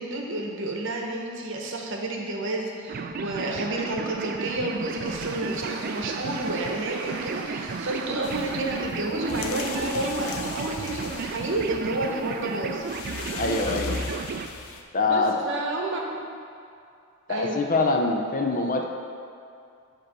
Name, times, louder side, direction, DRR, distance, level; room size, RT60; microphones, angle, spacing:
voice 1, 0.0-12.8 15.0-16.2 17.3-17.7, right 2 dB, 60° right, 0 dB, 0.9 m, -30 dB
sound 1, 2.9-14.5, right 5 dB, 45° right, 0.3 m, -34 dB
Train, 3.4-11.2, right 3 dB, 90° right, 0.6 m, -44 dB
sound 2, 8.2-14.8, left 4 dB, 85° left, 0.6 m, -37 dB
voice 2, 13.3-14.0 14.9-15.4 17.3-18.8, left 3 dB, 40° left, 2 dB, 0.5 m, -24 dB
7.8 x 3.0 x 6.1 m, 2.5 s
head